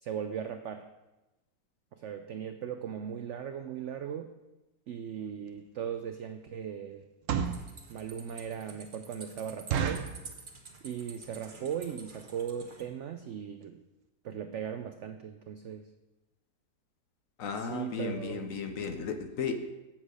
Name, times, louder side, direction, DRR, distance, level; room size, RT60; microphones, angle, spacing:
voice 1, 0.0-0.8 2.0-4.3 4.9-7.0 7.9-10.0 10.8-13.8 14.2-15.9 17.6-18.5, right 8 dB, 85° right, 7 dB, 0.6 m, -38 dB
sound 1, 5.5-5.6 6.1-6.3 7.0-7.7 8.2-8.3 8.7-8.8 9.1-9.2 9.7-10.2 10.8-11.1 11.3-11.4 11.7-11.9 12.5-12.6 12.8-13.0 13.3-13.4 13.6-13.7, right 7 dB, 65° right, 0.9 m, -32 dB
sound 2, 7.4-12.9, right 4 dB, 35° right, 1.0 m, -50 dB
voice 2, 17.4-19.6, left 5 dB, 60° left, 7 dB, 0.9 m, -35 dB
8.1 x 7.4 x 5.0 m, 1.0 s
omnidirectional pair, 1.8 m